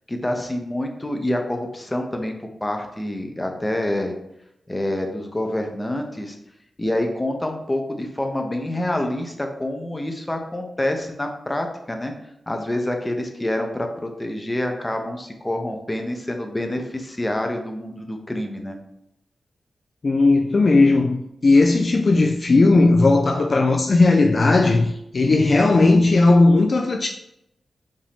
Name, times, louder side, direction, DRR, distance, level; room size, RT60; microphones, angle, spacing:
voice 1, 0.1-4.1 4.7-6.4 6.8-12.1 12.5-18.8, left 1 dB, 15° left, 0.7 m, -27 dB
voice 2, 20.0-27.1, left 3 dB, 50° left, 0.3 m, -16 dB
5.1 x 2.7 x 3.5 m
wide cardioid pair, 90°, 0 cm